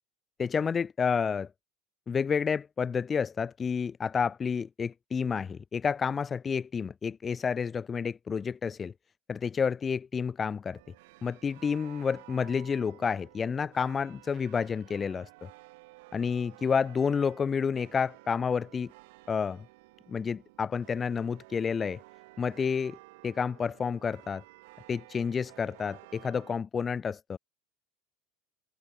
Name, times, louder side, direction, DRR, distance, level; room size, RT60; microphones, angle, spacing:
voice 1, 0.4-1.5 2.1-8.9 9.3-10.8 11.2-15.5 16.1-18.9 19.3-19.6 20.1-22.0 22.4-23.0 23.2-24.4 24.9-27.4, left 6 dB, 25° left, 1.3 m, -30 dB
sound 1, 10.7-26.6, right 24 dB, 75° right, 4.7 m, -54 dB
supercardioid pair, 95°, 0 cm